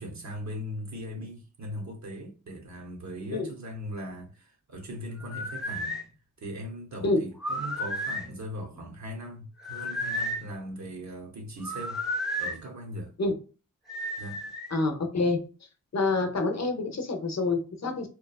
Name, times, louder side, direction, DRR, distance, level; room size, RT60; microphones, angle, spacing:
voice 1, 0.0-6.0 6.4-12.0 12.4-13.1 14.2-14.4, equal, 55° right, 0.9 m, -39 dB
sound 1, 5.2-6.0 7.4-8.3 9.6-10.5 11.6-12.6 13.9-14.8, equal, ahead, 0.8 m, -32 dB
voice 2, 14.7-15.4 15.9-18.1, left 3 dB, 50° left, 0.7 m, -27 dB
2.9 x 2.3 x 2.3 m
cardioid pair, 45°, 34 cm